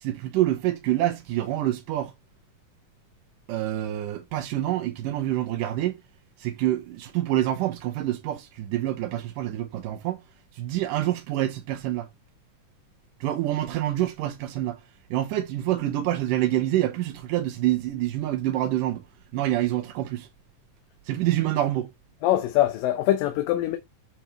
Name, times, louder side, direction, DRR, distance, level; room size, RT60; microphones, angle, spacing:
voice 1, 0.0-2.1 3.5-6.0 6.4-10.2 10.6-12.1 13.2-14.8 15.1-19.0 19.3-20.3 21.1-21.9, right 13 dB, 80° right, 2.6 m, -26 dB
voice 2, 22.2-23.8, left 13 dB, 90° left, 2.5 m, -23 dB
10.0 x 3.7 x 3.2 m
omnidirectional pair, 3.8 m